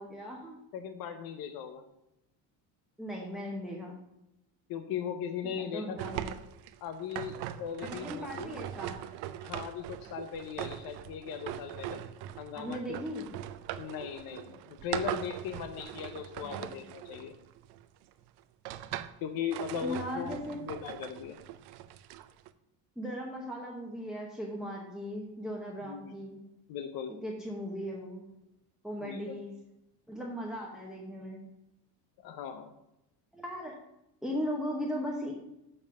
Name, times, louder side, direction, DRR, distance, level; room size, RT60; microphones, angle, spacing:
voice 1, 0.0-0.6 3.0-4.0 5.4-6.4 7.9-9.0 12.5-13.2 16.4-16.8 19.7-20.6 23.0-26.4 27.2-28.3 28.8-29.5 30.1-31.4 33.3-33.7 34.2-35.3, equal, ahead, -2 dB, 0.9 m, -38 dB
voice 2, 0.7-1.8 4.7-6.0 6.8-8.6 9.4-12.0 12.4-13.0 13.8-17.3 19.2-21.4 25.8-26.1 26.7-27.2 29.0-29.4 32.2-32.7, left 8 dB, 55° left, 8 dB, 0.8 m, -38 dB
sound 1, 6.0-17.9 18.4-19.2 19.5-22.5, right 12 dB, 65° right, 0.6 m, -41 dB
7.1 x 5.3 x 7.2 m, 0.87 s
cardioid pair, 165°, 42 cm